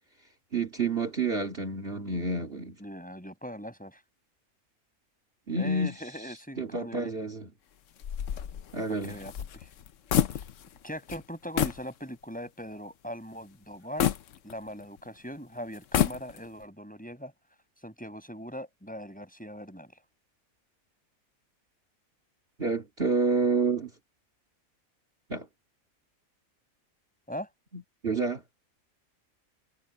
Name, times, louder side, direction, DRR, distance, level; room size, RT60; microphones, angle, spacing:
voice 1, 0.5-2.8 5.5-5.9 6.6-7.5 8.7-9.2 22.6-23.9 25.3-25.5 27.7-28.4, right 3 dB, 40° right, 3.0 m, -29 dB
voice 2, 2.8-4.0 5.6-7.1 9.0-9.7 10.8-14.1 14.4-17.3 17.8-19.9 27.3-27.5, equal, 5° left, 5.6 m, -40 dB
sound 1, 8.0-10.8 11.1-11.2 11.6-11.9 12.4-12.5 14.0-15.0 15.7-16.6, left 10 dB, 65° left, 1.1 m, -29 dB
omnidirectional pair, 1.5 m